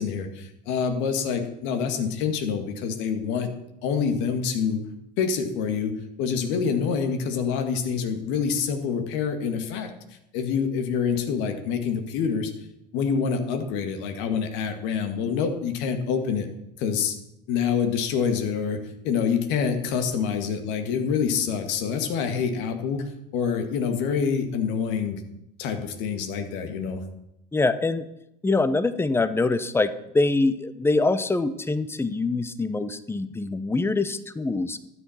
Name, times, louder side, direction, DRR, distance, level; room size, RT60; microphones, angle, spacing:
voice 1, 0.0-3.5 3.8-4.8 5.2-9.9 10.3-12.5 12.9-16.5 16.8-17.2 17.5-25.2 25.6-27.0, left 6 dB, 60° left, 7 dB, 2.0 m, -26 dB
voice 2, 27.5-28.0 28.4-34.8, left 3 dB, 10° left, 13 dB, 0.9 m, -24 dB
12.5 x 9.6 x 5.9 m, 0.83 s
hypercardioid pair, 70°, 21 cm